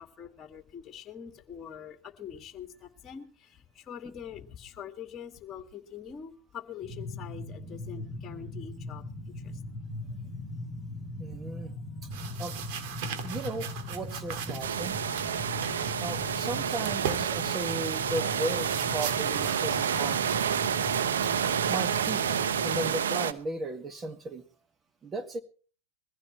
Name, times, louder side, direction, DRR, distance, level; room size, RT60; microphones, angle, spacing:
voice 1, 0.0-9.6, left 8 dB, 30° left, 5 dB, 2.2 m, -44 dB
sound 1, 6.8-22.9, left 2 dB, 5° left, 3.6 m, -40 dB
voice 2, 11.2-11.7 12.4-12.6 13.2-15.0 16.0-20.3 21.2-24.4 25.0-25.4, right 2 dB, 25° right, 9 dB, 1.9 m, -36 dB
sound 2, 12.1-20.4, right 8 dB, 65° right, 2.2 m, -40 dB
sound 3, 14.6-23.3, right 8 dB, 85° right, 0.9 m, -29 dB
22.0 x 15.5 x 3.2 m, 0.41 s
hypercardioid pair, 100°, 0 cm